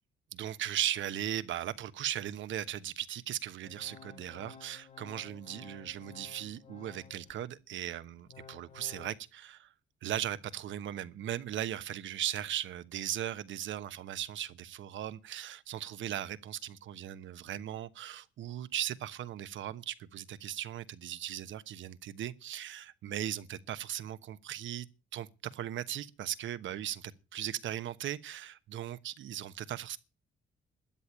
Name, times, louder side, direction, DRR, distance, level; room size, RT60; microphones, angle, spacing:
voice 1, 0.3-9.7 10.0-24.9 25.1-30.0, right 11 dB, 75° right, 1.1 m, -38 dB
Organ, 3.6-7.4 7.9-9.2, left 7 dB, 35° left, 1.8 m, -53 dB
13.0 x 8.4 x 8.8 m
cardioid pair, 90°, 20 cm